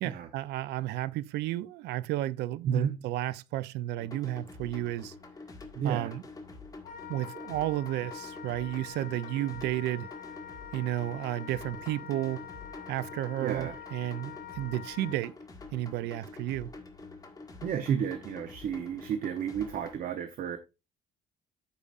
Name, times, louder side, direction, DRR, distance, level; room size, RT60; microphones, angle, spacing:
voice 1, 0.0-5.1 5.8-6.2 7.1-10.1 10.7-12.5 12.9-15.3 15.7-16.7, right 14 dB, 80° right, 0.5 m, -32 dB
sound 1, 4.0-20.0, left 3 dB, 20° left, 1.6 m, -47 dB
voice 2, 5.7-6.1 13.4-13.7 17.6-20.6, right 8 dB, 55° right, 0.9 m, -31 dB
Wind instrument woodwind instrument, 6.8-15.2, left 9 dB, 55° left, 2.1 m, -45 dB
14.0 x 4.9 x 2.5 m
cardioid pair, 110°, 17 cm